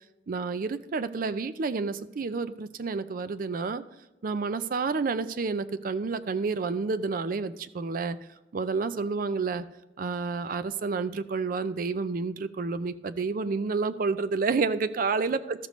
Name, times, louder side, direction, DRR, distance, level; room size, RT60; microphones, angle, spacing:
voice 1, 0.3-3.8 4.2-8.2 8.5-9.6 10.0-15.7, right 4 dB, 50° right, 13 dB, 0.4 m, -29 dB
13.0 x 6.7 x 3.1 m, 1.0 s
head